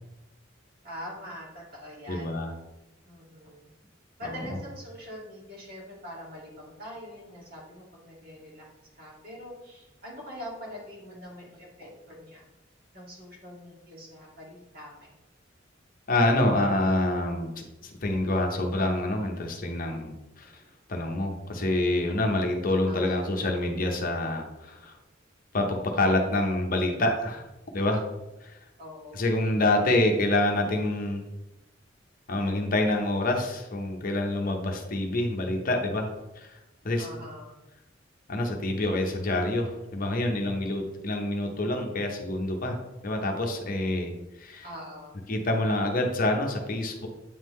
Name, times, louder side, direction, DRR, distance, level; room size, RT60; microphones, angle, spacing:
voice 1, 0.8-2.3 3.0-3.7 4.2-8.6 9.0-12.4 12.9-15.1 22.8-23.4 28.8-29.4 37.0-37.6 44.6-45.2, equal, 50° right, -4 dB, 2.1 m, -43 dB
voice 2, 2.1-2.5 16.1-17.5 17.8-20.5 20.9-24.9 25.5-27.4 27.7-28.0 28.4-28.6 29.1-31.2 32.3-36.1 36.4-36.5 36.8-37.1 38.3-42.8 43.0-44.1 44.4-44.6 45.3-47.1, left 1 dB, 45° left, 3 dB, 0.8 m, -27 dB
8.6 x 3.7 x 3.1 m, 0.97 s
head